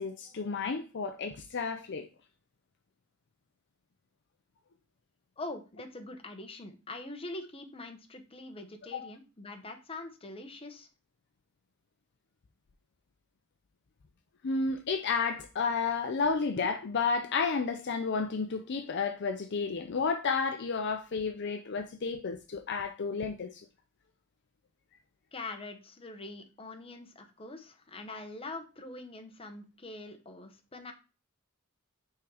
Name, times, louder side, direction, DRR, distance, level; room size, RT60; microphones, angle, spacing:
voice 1, 0.0-2.1 8.9-9.1 14.4-23.6, left 5 dB, 55° left, 0.5 m, -31 dB
voice 2, 5.4-10.9 25.3-30.9, left 2 dB, 25° left, 1.0 m, -43 dB
5.7 x 3.8 x 4.8 m
head